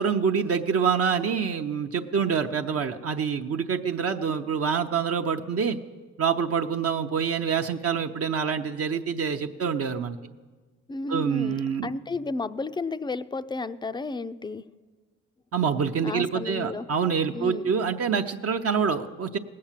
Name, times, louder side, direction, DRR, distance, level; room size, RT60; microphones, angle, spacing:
voice 1, 0.0-5.8 6.2-10.2 11.1-11.9 15.5-19.4, right 6 dB, 50° right, 4 dB, 0.7 m, -26 dB
voice 2, 10.9-14.6 16.0-16.9 17.3-17.7, left 3 dB, 15° left, 13 dB, 0.4 m, -32 dB
18.5 x 8.6 x 7.4 m, 1.4 s
cardioid pair, 90°, 30 cm